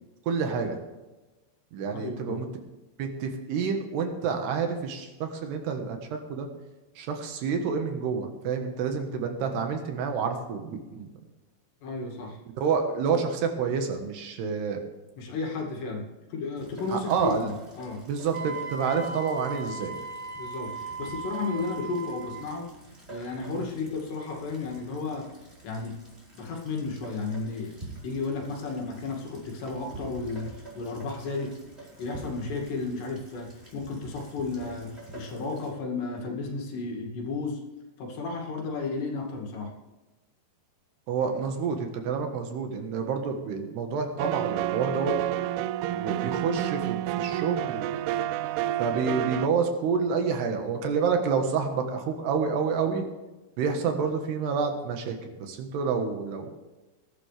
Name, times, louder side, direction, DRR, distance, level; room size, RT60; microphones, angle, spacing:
voice 1, 0.3-0.8 1.7-2.5 3.0-6.5 7.0-11.1 12.6-14.8 16.9-17.5 18.1-19.9 21.5-21.6 23.5-23.6 41.1-45.2 45.9-47.9 48.8-53.0 53.6-56.5, right 5 dB, 70° right, 4 dB, 3.2 m, -28 dB
voice 2, 1.9-2.5 11.8-12.4 15.2-18.1 20.3-22.7 23.1-25.3 25.6-26.0 26.3-27.8 28.0-30.5 30.8-37.6 38.0-39.7, left 3 dB, 65° left, 1 dB, 4.4 m, -33 dB
Rain, 16.6-35.7, right 2 dB, 15° right, 4.3 m, -48 dB
Wind instrument woodwind instrument, 18.3-22.5, right 3 dB, 35° right, 3.5 m, -37 dB
sound 1, 44.2-49.5, right 13 dB, 85° right, 3.0 m, -29 dB
20.5 x 12.0 x 3.4 m, 1.1 s
omnidirectional pair, 5.4 m